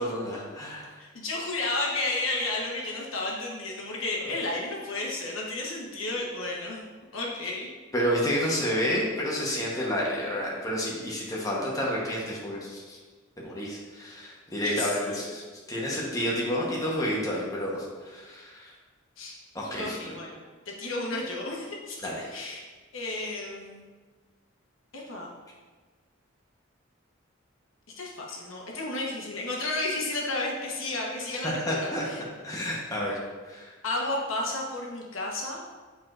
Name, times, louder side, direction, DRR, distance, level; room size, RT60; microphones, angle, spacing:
voice 1, 0.0-1.0 7.9-13.0 13.4-18.7 19.5-20.0 22.0-22.4 31.4-32.0 32.4-33.2 33.4-33.7, equal, 15° left, -4 dB, 1.0 m, -30 dB
voice 2, 1.0-6.8 7.1-7.7 8.5-8.6 14.6-15.3 19.2-19.4 19.8-20.3 20.7-22.0 22.3-22.7 22.9-23.8 24.9-25.3 28.0-32.2 33.8-35.6, left 2 dB, 75° left, -2 dB, 1.2 m, -32 dB
8.3 x 4.7 x 2.5 m, 1.4 s
head